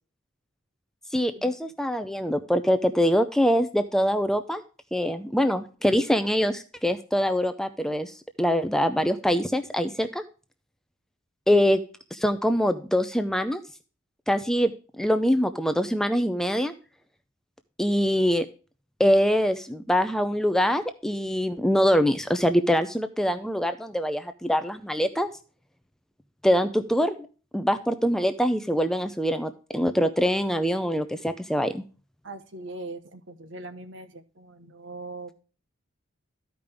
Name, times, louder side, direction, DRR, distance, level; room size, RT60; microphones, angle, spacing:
voice 1, 1.1-4.6 4.9-10.2 11.5-11.8 12.1-13.6 14.3-16.7 17.8-18.5 19.0-25.3 26.4-27.3 27.5-31.8, equal, ahead, 9 dB, 0.4 m, -24 dB
voice 2, 32.2-35.3, right 2 dB, 60° right, 9 dB, 1.1 m, -40 dB
13.5 x 5.2 x 3.4 m, 0.37 s
head